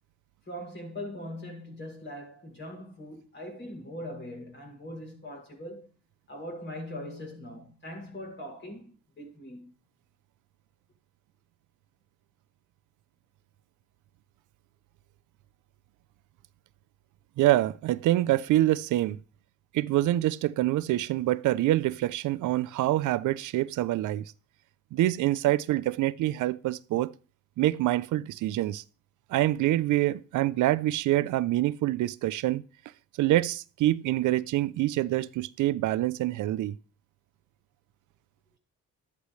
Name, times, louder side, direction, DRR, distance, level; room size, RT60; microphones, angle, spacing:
voice 1, 0.4-5.9 6.3-9.7, left 1 dB, 40° left, 6.9 m, -41 dB
voice 2, 17.4-19.2 19.7-24.3 24.9-27.1 27.6-28.8 29.3-32.6 33.2-36.8, right 15 dB, 80° right, 0.6 m, -26 dB
13.5 x 11.5 x 3.2 m
cardioid pair, 90°, 30 cm